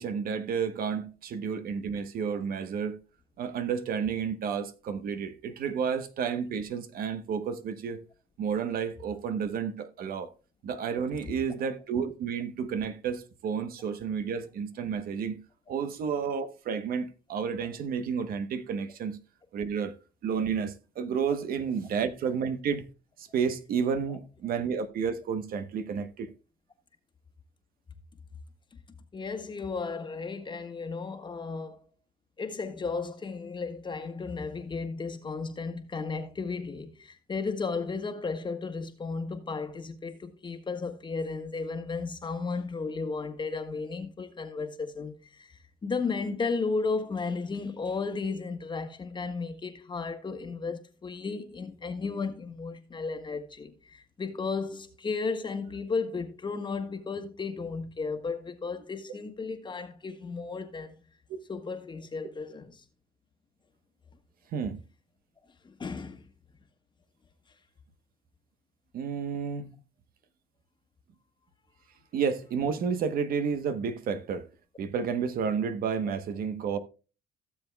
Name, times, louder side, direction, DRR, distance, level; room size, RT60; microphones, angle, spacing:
voice 1, 0.0-3.0 3.4-8.0 8.4-10.3 10.6-15.4 15.7-19.2 19.5-19.9 20.2-22.8 23.2-26.3 64.5-64.8 68.9-69.8 72.1-74.5 74.8-76.8, right 6 dB, 60° right, 1.0 m, -31 dB
voice 2, 29.1-31.8 32.4-60.9 61.5-62.8 65.6-66.3, left 4 dB, 25° left, 1.5 m, -34 dB
16.5 x 7.1 x 2.3 m
cardioid pair, 110°, 17 cm